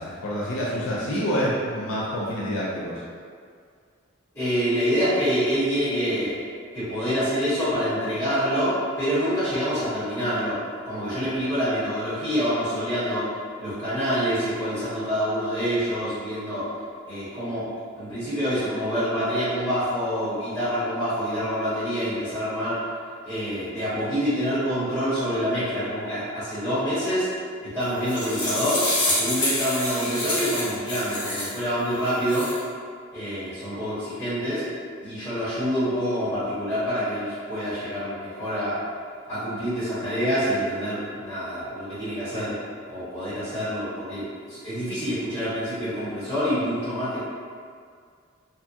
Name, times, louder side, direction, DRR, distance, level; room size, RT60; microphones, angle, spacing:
voice 1, 0.0-3.0, equal, 75° left, -6 dB, 0.5 m, -27 dB
voice 2, 4.3-6.4 6.7-10.6 10.8-13.3 13.6-16.7 17.1-17.7 17.9-22.8 23.2-27.3 27.6-32.5 33.1-34.7 35.0-38.8 39.3-42.6 42.9-47.2, equal, 10° left, -16 dB, 1.2 m, -26 dB
sound 1, 27.8-31.6 32.1-32.6, left 1 dB, 25° left, 0.9 m, -27 dB
2.7 x 2.3 x 2.7 m, 2.1 s
head